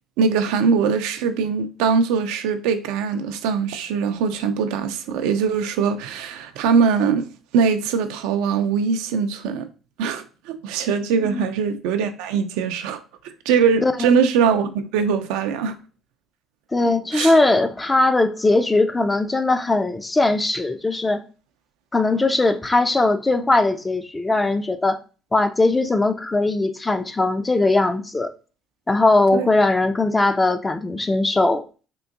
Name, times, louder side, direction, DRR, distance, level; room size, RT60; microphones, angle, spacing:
voice 1, 0.2-7.3 7.5-9.7 10.0-13.0 13.5-15.7 17.1-17.4 29.3-29.5, right 6 dB, 80° right, 0.4 m, -21 dB
voice 2, 16.7-21.2 21.9-25.0 25.3-28.3 28.9-31.6, left 2 dB, 20° left, 0.4 m, -19 dB
3.7 x 2.5 x 2.5 m
supercardioid pair, 70°, 0 cm